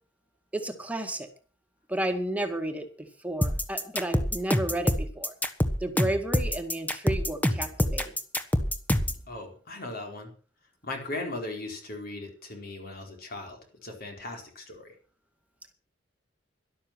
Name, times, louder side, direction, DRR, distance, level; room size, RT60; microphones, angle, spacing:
voice 1, 0.5-1.3 1.9-5.3 5.8-8.1, right 1 dB, 10° right, 5 dB, 2.0 m, -32 dB
sound 1, 3.4-9.2, left 1 dB, 10° left, 1.3 m, -26 dB
voice 2, 9.3-10.3 10.8-14.9, left 2 dB, 55° left, 3 dB, 4.5 m, -38 dB
12.5 x 12.0 x 6.1 m, 0.39 s
head